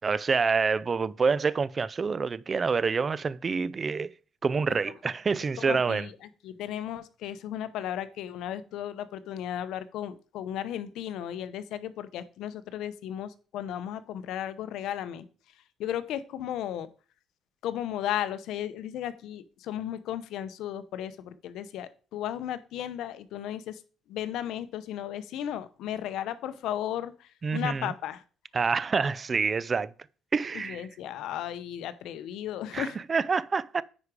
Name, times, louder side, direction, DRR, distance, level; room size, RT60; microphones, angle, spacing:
voice 1, 0.0-4.1 4.4-6.1 27.4-27.9 28.5-29.9 30.3-30.8 32.7-33.8, right 5 dB, 30° right, 0.5 m, -27 dB
voice 2, 5.6-6.1 6.4-15.2 15.8-16.9 17.6-23.8 24.1-28.2 30.5-33.0, left 11 dB, 80° left, 0.8 m, -35 dB
9.6 x 4.9 x 4.9 m
cardioid pair, 105°, 0 cm